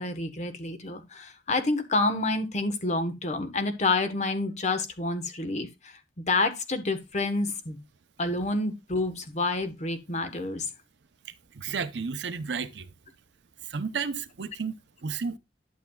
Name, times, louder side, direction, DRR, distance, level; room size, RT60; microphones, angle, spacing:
voice 1, 0.0-6.0 6.3-7.8 8.2-10.7, left 2 dB, 40° left, 1.2 m, -28 dB
voice 2, 11.5-12.9 13.7-15.4, right 5 dB, 80° right, 0.7 m, -32 dB
11.5 x 7.2 x 2.3 m
head